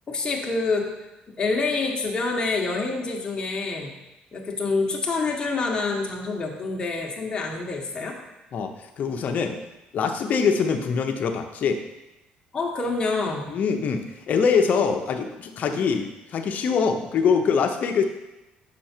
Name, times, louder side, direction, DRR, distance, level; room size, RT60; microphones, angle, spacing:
voice 1, 0.1-0.9 1.4-3.9 4.3-8.2 12.5-13.5, left 3 dB, 25° left, -1 dB, 1.3 m, -27 dB
voice 2, 8.5-9.6 9.9-11.8 13.5-18.0, left 6 dB, 50° left, 5 dB, 0.8 m, -24 dB
6.2 x 5.7 x 4.5 m, 0.98 s
cardioid pair, 110°, 3 cm